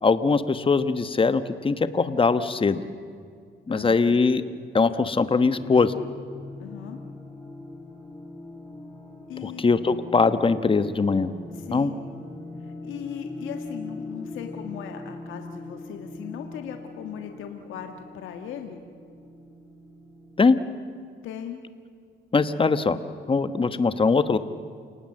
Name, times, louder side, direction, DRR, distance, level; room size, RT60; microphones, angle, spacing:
voice 1, 0.0-2.8 3.7-4.4 4.7-5.9 9.4-11.3 11.7-11.9 20.4-20.6 22.3-23.0 23.3-24.4, left 4 dB, 25° left, 11 dB, 1.2 m, -21 dB
voice 2, 3.7-4.1 6.6-7.0 9.3-9.7 11.5-12.0 12.6-18.8 21.2-21.6, left 9 dB, 85° left, 5 dB, 1.6 m, -38 dB
sound 1, 5.4-20.7, left 2 dB, 5° left, 4.2 m, -41 dB
29.0 x 18.5 x 7.8 m, 2.2 s
cardioid pair, 90°, 20 cm